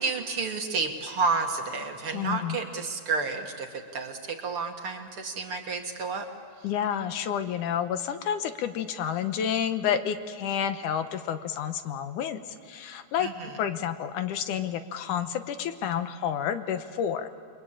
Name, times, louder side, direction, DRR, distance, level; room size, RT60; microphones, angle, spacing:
voice 1, 0.0-6.3 6.6-6.7 13.2-13.5, right 4 dB, 50° right, 4 dB, 2.0 m, -31 dB
voice 2, 2.1-2.6 6.6-12.4 12.7-13.3 13.6-17.3, left 9 dB, 75° left, 10 dB, 2.5 m, -30 dB
29.5 x 22.5 x 8.8 m, 2.3 s
omnidirectional pair, 3.7 m